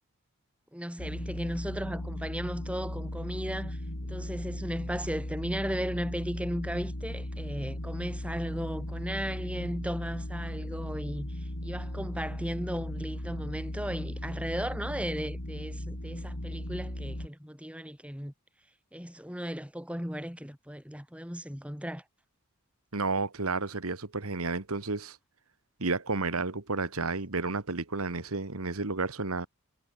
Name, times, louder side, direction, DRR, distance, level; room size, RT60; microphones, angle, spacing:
voice 1, 0.7-18.3 18.9-22.0, equal, 5° right, 3.3 m, -36 dB
sound 1, 1.0-17.3, left 1 dB, 75° left, 4.1 m, -37 dB
voice 2, 22.9-25.2 25.8-29.5, right 3 dB, 85° right, 1.9 m, -31 dB
head